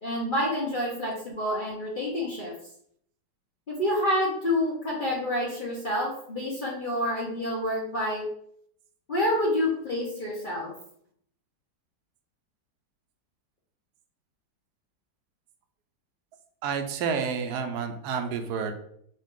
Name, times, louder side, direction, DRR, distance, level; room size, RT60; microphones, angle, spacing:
voice 1, 0.0-2.5 3.7-8.3 9.1-10.7, left 1 dB, 40° left, -4 dB, 0.7 m, -28 dB
voice 2, 16.6-18.8, right 6 dB, 70° right, 6 dB, 1.1 m, -29 dB
5.4 x 2.5 x 3.7 m, 0.67 s
omnidirectional pair, 2.0 m